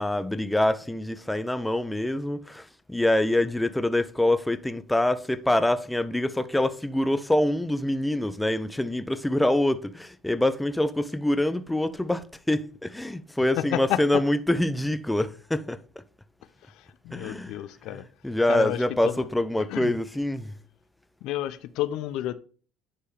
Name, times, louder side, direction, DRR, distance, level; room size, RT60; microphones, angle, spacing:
voice 1, 0.0-15.8 17.1-17.6 17.9-20.5, left 1 dB, 5° left, 0.8 m, -25 dB
voice 2, 13.6-14.0 16.7-18.0 18.5-19.2 19.7-20.0 21.2-22.3, left 13 dB, 70° left, 0.5 m, -30 dB
10.0 x 4.5 x 3.4 m
hypercardioid pair, 70°, 0 cm